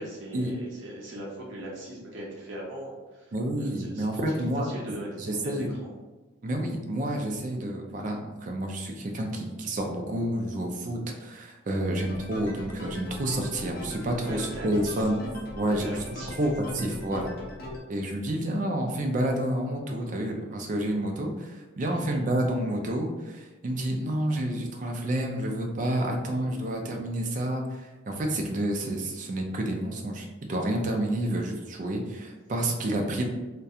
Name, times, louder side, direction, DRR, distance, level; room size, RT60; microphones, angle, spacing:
voice 1, 0.0-5.9 14.3-15.1 15.8-16.4 21.9-22.2, right 1 dB, 60° right, -4 dB, 0.6 m, -40 dB
voice 2, 3.3-5.7 6.4-15.2 15.6-16.0 16.4-17.3 17.9-33.2, right 1 dB, 35° right, 2 dB, 0.3 m, -29 dB
sound 1, 12.0-17.8, left 1 dB, 45° left, 0.5 m, -40 dB
2.3 x 2.2 x 2.7 m, 1.2 s
head